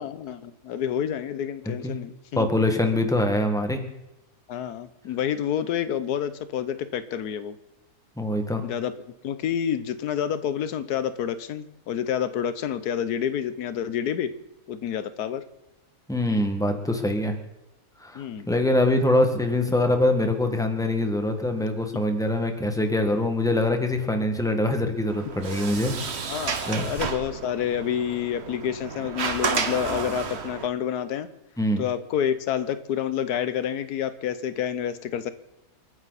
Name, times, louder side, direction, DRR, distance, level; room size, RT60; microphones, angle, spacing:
voice 1, 0.0-2.5 4.5-7.5 8.6-8.9 9.2-14.3 14.7-15.4 18.1-18.5 26.3-31.3 31.8-35.3, left 9 dB, 90° left, 13 dB, 1.4 m, -28 dB
voice 2, 2.4-3.8 8.2-8.6 16.1-17.3 18.0-25.9 26.7-26.9 31.6-31.8, left 1 dB, ahead, 5 dB, 1.7 m, -24 dB
Sliding door, 25.1-30.7, right 5 dB, 45° right, 1.3 m, -31 dB
29.0 x 9.7 x 4.1 m, 0.94 s
omnidirectional pair, 1.6 m